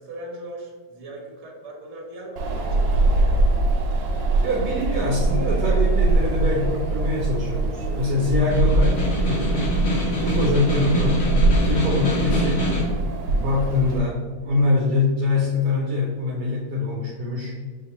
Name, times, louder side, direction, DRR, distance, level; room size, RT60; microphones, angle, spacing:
voice 1, 0.0-3.4 11.6-11.8, right 1 dB, 45° right, -1 dB, 1.1 m, -39 dB
Wind, 2.4-14.0, right 2 dB, 90° right, 1.3 m, -22 dB
voice 2, 4.4-9.7 10.2-11.3 11.6-12.7 13.3-17.6, left 2 dB, 70° right, -3 dB, 1.1 m, -24 dB
Snare drum, 8.5-13.0, equal, 50° left, 1.1 m, -25 dB
5.1 x 2.8 x 2.9 m, 1.5 s
omnidirectional pair, 1.9 m